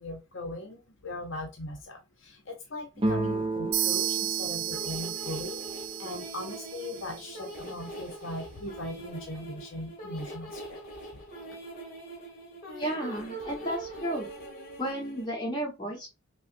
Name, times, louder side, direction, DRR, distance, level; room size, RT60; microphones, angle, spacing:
voice 1, 0.0-10.8, left 1 dB, 60° left, 2 dB, 0.7 m, -39 dB
sound 1, 3.0-6.6, right 2 dB, 25° right, 0.4 m, -33 dB
sound 2, 3.7-7.5, right 11 dB, 75° right, 0.5 m, -33 dB
sound 3, 4.7-15.3, right 1 dB, 40° left, 1.4 m, -43 dB
voice 2, 12.8-14.3 14.8-16.1, right 1 dB, 20° left, -2 dB, 1.4 m, -33 dB
5.3 x 2.1 x 2.6 m, 0.24 s
head